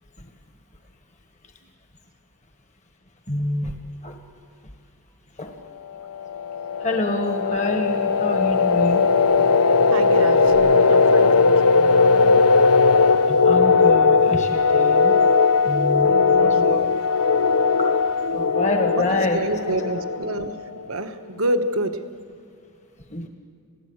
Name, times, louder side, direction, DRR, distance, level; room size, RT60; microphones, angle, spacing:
voice 1, 3.3-3.7 4.0-4.2 5.4-5.5 6.8-9.0 13.3-15.2 15.6-16.1 16.4-16.9 17.8-17.9 18.3-19.4 23.1-23.3, left 1 dB, 35° left, 4 dB, 1.4 m, -27 dB
sound 1, 6.1-20.7, left 4 dB, 90° left, 0.6 m, -18 dB
voice 2, 9.9-12.4 16.0-16.9 18.9-20.6 20.9-22.0, right 1 dB, 70° right, 8 dB, 1.2 m, -28 dB
27.0 x 17.5 x 8.0 m, 2.3 s
head